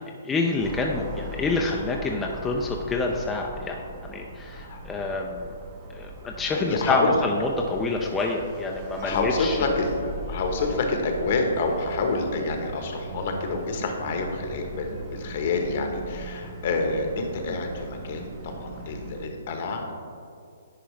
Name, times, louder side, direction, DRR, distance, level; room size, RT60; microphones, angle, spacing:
voice 1, 0.0-3.8 4.0-5.5 5.9-9.6 17.5-17.6, left 3 dB, 10° left, 0 dB, 0.5 m, -27 dB
sound 1, 0.6-19.3, right 1 dB, 35° right, 0.8 m, -40 dB
voice 2, 6.5-7.3 9.0-19.9, left 3 dB, 50° left, 3 dB, 1.1 m, -27 dB
10.0 x 4.6 x 3.2 m, 2.3 s
hypercardioid pair, 140°, 0 cm